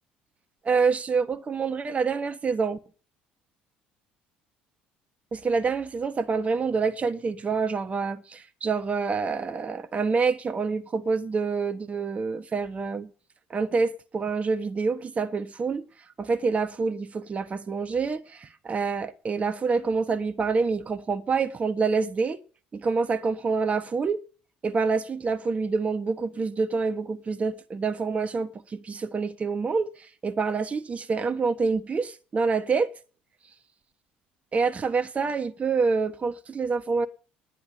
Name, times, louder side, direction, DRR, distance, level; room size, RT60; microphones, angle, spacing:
voice 1, 0.6-2.8 5.3-13.1 13.5-15.8 16.2-22.4 22.7-24.2 24.6-32.9 34.5-37.1, right 4 dB, 30° right, 1.2 m, -27 dB
10.5 x 10.0 x 6.6 m
hypercardioid pair, 60°, 4 cm